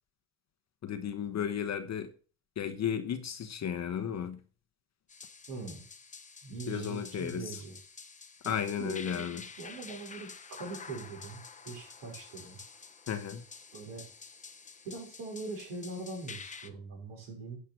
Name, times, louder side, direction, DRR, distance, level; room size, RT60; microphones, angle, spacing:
voice 1, 0.8-2.1 2.6-4.4 6.7-7.6 8.4-9.4 13.1-13.4, left 8 dB, 35° left, 8 dB, 1.0 m, -34 dB
sound 1, 5.1-16.7, left 5 dB, 15° left, 0.9 m, -49 dB
voice 2, 5.5-5.8 6.4-7.8 8.4-12.6 13.7-14.1 14.8-17.6, right 3 dB, 65° right, 0 dB, 5.3 m, -42 dB
10.0 x 5.6 x 6.1 m, 0.40 s
supercardioid pair, 90°, 45 cm